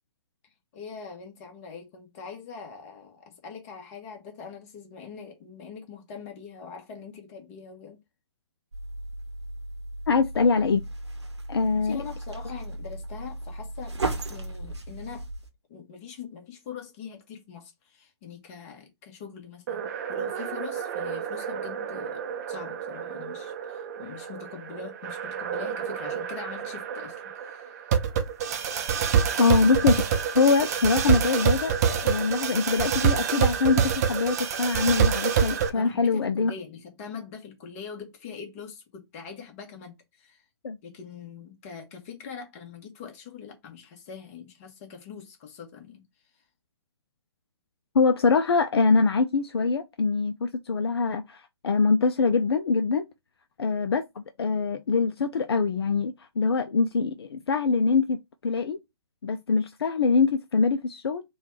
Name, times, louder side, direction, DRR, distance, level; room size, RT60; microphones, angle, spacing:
voice 1, 0.7-8.0 11.8-13.9 14.3-15.3 15.7-22.2 22.5-27.9 35.7-40.4 40.8-46.0, left 6 dB, 30° left, 1.1 m, -43 dB
sound 1, 8.7-15.5, right 2 dB, 75° right, 0.9 m, -36 dB
voice 2, 10.1-10.9 11.5-12.0 29.4-30.0 30.3-36.5 40.6-40.8 47.9-53.0 53.6-58.8 59.2-61.2, left 4 dB, 60° left, 0.4 m, -24 dB
sound 2, 19.7-35.7, right 7 dB, 35° right, 0.6 m, -27 dB
3.3 x 2.3 x 4.4 m
figure-of-eight pair, 130°, 15 cm